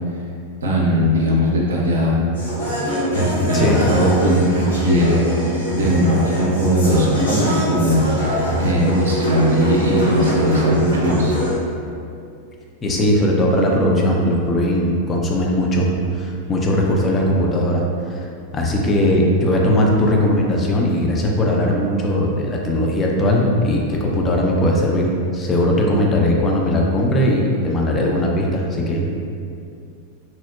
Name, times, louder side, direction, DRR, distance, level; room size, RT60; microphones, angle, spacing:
voice 1, 0.6-2.2 3.1-8.1 8.6-11.3, equal, 70° right, -4 dB, 0.4 m, -19 dB
sound 1, 2.3-11.5, equal, 75° left, 0.7 m, -23 dB
voice 2, 3.5-3.9 12.8-15.9 16.1-18.2 18.5-29.1, left 1 dB, 20° left, -1 dB, 0.3 m, -19 dB
2.7 x 2.0 x 2.3 m, 2.4 s
figure-of-eight pair, 90°, 0 cm